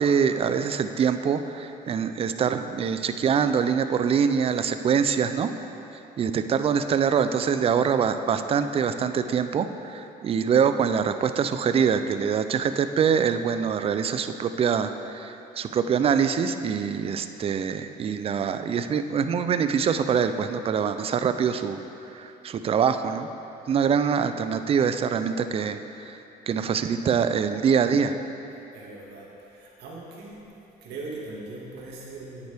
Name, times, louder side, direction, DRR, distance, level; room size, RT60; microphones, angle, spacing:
voice 1, 0.0-5.5 6.2-21.8 22.1-23.3 23.7-26.2 26.5-28.2, right 7 dB, 35° right, 9 dB, 0.4 m, -24 dB
voice 2, 28.7-30.4 30.8-32.5, right 2 dB, 75° right, -4 dB, 2.1 m, -40 dB
9.4 x 9.0 x 3.5 m, 2.9 s
cardioid pair, 110°, 17 cm